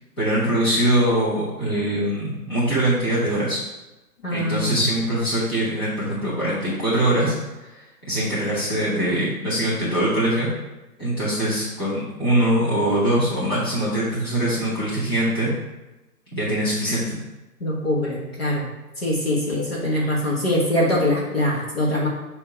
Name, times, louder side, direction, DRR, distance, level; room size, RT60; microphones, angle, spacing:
voice 1, 0.2-3.6 4.3-7.3 7.7-7.8 8.1-10.5 11.0-15.5 16.3-17.2, right 1 dB, 15° left, -12 dB, 1.3 m, -22 dB
voice 2, 4.2-4.7 17.6-18.7 19.0-22.1, left 1 dB, 40° left, -4 dB, 1.3 m, -23 dB
7.3 x 2.9 x 4.8 m, 1.0 s
hypercardioid pair, 180°, 48 cm